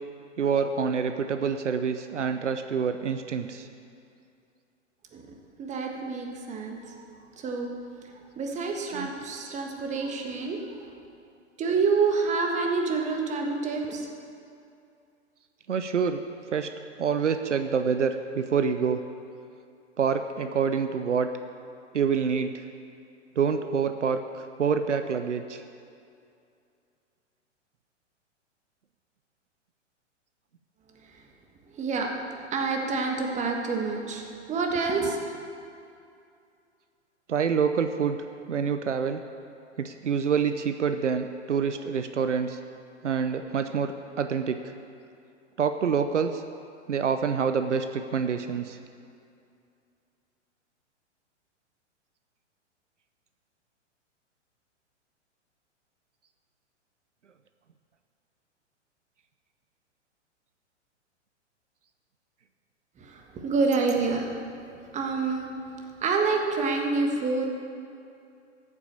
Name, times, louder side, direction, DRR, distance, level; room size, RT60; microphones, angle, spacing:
voice 1, 0.4-3.7 8.9-9.1 15.7-16.2 16.5-16.7 17.0-19.0 20.0-21.3 21.9-22.5 23.4-24.2 24.6-25.6 37.3-38.2 38.5-39.2 39.8-42.6 43.0-44.6 45.6-46.4 46.9-48.8, right 6 dB, 75° right, 8 dB, 0.8 m, -26 dB
voice 2, 5.6-7.0 7.4-7.7 8.4-10.8 11.6-14.1 31.7-35.2 63.0-64.4 64.9-65.5 66.0-67.5, right 4 dB, 20° right, 2 dB, 1.6 m, -27 dB
14.0 x 8.5 x 6.8 m, 2.5 s
figure-of-eight pair, 110°, 36 cm